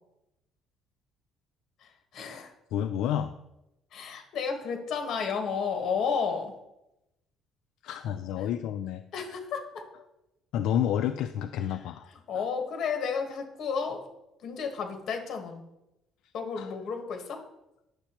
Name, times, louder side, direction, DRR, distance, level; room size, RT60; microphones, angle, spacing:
voice 1, 2.1-2.5 3.9-6.5 9.1-9.8 12.3-14.0 14.4-15.6 16.3-17.4, left 6 dB, 50° left, 4 dB, 1.3 m, -32 dB
voice 2, 2.7-3.3 7.8-9.0 10.5-12.1 12.3-12.4 16.6-16.7, left 10 dB, 75° left, 8 dB, 0.3 m, -30 dB
10.0 x 7.2 x 3.0 m, 0.90 s
cardioid pair, 150°, 0 cm